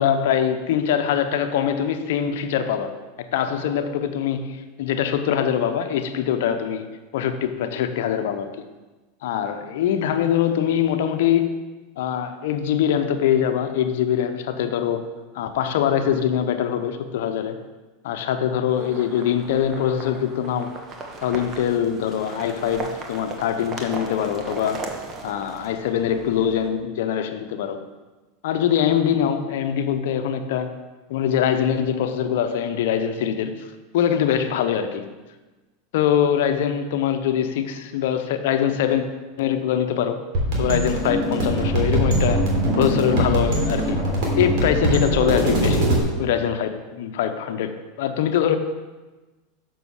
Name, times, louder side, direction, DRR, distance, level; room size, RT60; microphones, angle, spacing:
voice 1, 0.0-3.0 3.3-8.6 9.2-11.6 12.0-15.0 15.3-17.6 18.0-20.8 21.2-24.8 25.2-27.8 28.4-30.7 31.1-35.0 35.9-39.0 39.4-40.2 40.6-42.4 42.8-44.0 44.4-45.9 46.2-48.6, left 9 dB, 75° left, 8 dB, 0.8 m, -23 dB
sound 1, 18.7-26.7, right 3 dB, 35° right, 1.4 m, -37 dB
sound 2, 40.3-46.0, right 1 dB, 60° right, 3.2 m, -21 dB
7.0 x 6.2 x 6.3 m, 1.2 s
hypercardioid pair, 110°, 0 cm